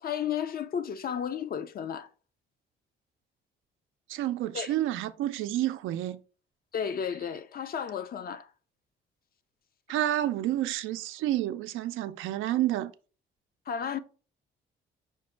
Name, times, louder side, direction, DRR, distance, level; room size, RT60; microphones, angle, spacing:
voice 1, 0.0-2.1 4.5-4.8 6.7-8.5 13.7-14.0, left 8 dB, 50° left, 0.5 m, -33 dB
voice 2, 4.1-6.2 9.9-12.9, right 13 dB, 90° right, 0.4 m, -29 dB
5.8 x 2.1 x 4.4 m
cardioid pair, 90°, 20 cm